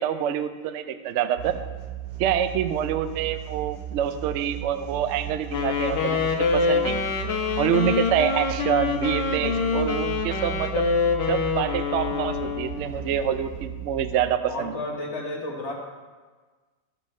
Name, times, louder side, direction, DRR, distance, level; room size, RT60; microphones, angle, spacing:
voice 1, 0.0-1.6 2.2-7.1 7.6-10.8 11.3-14.8, right 9 dB, 90° right, 10 dB, 0.6 m, -26 dB
sound 1, 1.4-14.2, right 10 dB, 60° right, 1.3 m, -36 dB
Wind instrument woodwind instrument, 5.5-13.0, left 5 dB, 85° left, 1.6 m, -25 dB
voice 2, 14.5-15.7, left 2 dB, 45° left, -1 dB, 1.5 m, -32 dB
13.5 x 6.7 x 3.2 m, 1.4 s
omnidirectional pair, 1.9 m